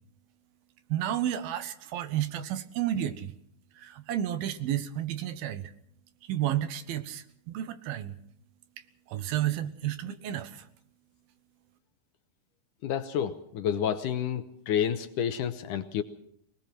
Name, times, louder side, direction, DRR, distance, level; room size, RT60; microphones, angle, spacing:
voice 1, 0.9-3.3 3.8-5.7 6.3-8.2 9.1-10.6, right 11 dB, 80° right, 11 dB, 3.0 m, -31 dB
voice 2, 12.8-16.0, left 9 dB, 70° left, 10 dB, 2.2 m, -29 dB
24.5 x 19.0 x 6.0 m, 0.70 s
omnidirectional pair, 4.3 m